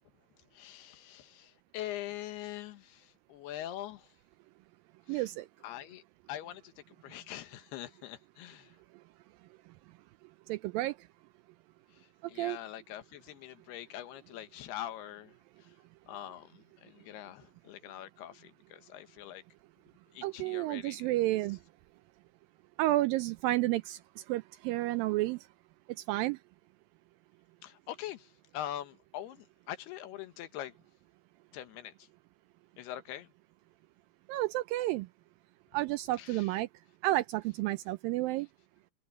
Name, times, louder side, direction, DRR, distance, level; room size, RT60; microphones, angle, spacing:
voice 1, 0.5-4.1 5.1-5.3 5.6-6.0 6.3-6.7 7.0-8.8 11.9-15.7 16.1-19.4 20.1-21.1 27.6-30.7 31.5-32.1 32.8-33.3 36.2-36.5, left 12 dB, 85° left, 3.3 m, -43 dB
voice 2, 5.1-5.5 10.5-10.9 12.4-12.6 20.2-21.6 22.8-24.0 24.3-25.4 26.1-26.4 34.3-35.1 35.7-36.7 37.0-38.5, right 17 dB, 85° right, 2.1 m, -30 dB
omnidirectional pair, 4.5 m